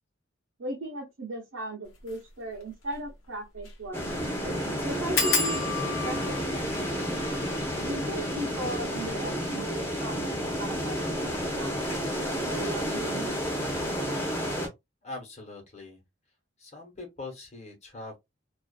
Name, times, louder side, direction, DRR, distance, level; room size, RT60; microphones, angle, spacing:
voice 1, 0.6-4.0 4.4-4.5 4.8-6.5 7.8-13.3, right 1 dB, 70° right, 0.7 m, -37 dB
sound 1, 2.0-2.2 2.6-2.7 2.9-3.0 3.6-3.8 4.1-4.2 5.1-10.4 11.1-11.6 11.9-12.3 12.5-12.6, left 4 dB, 85° left, 0.9 m, -34 dB
sound 2, 3.9-14.7, equal, 10° left, 0.7 m, -31 dB
voice 2, 15.0-16.0 16.6-18.2, left 3 dB, 35° left, 1.1 m, -42 dB
2.4 x 2.4 x 2.3 m
head